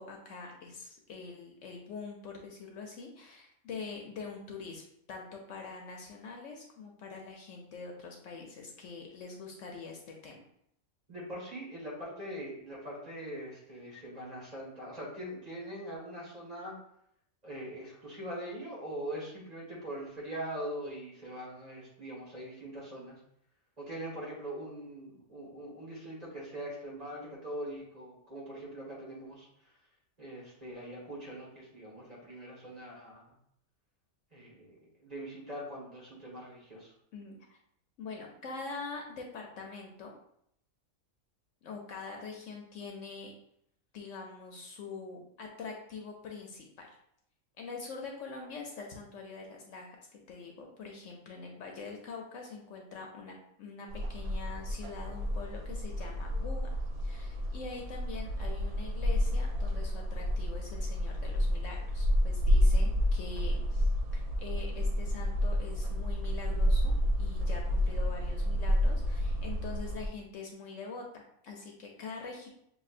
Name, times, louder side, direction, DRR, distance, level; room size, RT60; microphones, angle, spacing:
voice 1, 0.0-4.8 5.1-10.4 37.1-37.6 38.0-40.1 41.6-43.3 43.9-47.0 47.6-56.7 57.0-72.5, left 4 dB, 65° left, 1 dB, 0.9 m, -44 dB
voice 2, 11.1-16.7 17.4-23.2 23.8-29.7 30.2-33.2 34.3-34.7 35.0-36.9, right 1 dB, 30° right, -5 dB, 1.5 m, -42 dB
sound 1, 53.9-70.1, equal, 85° right, 1.1 m, -30 dB
6.3 x 2.6 x 2.4 m, 0.72 s
omnidirectional pair, 1.5 m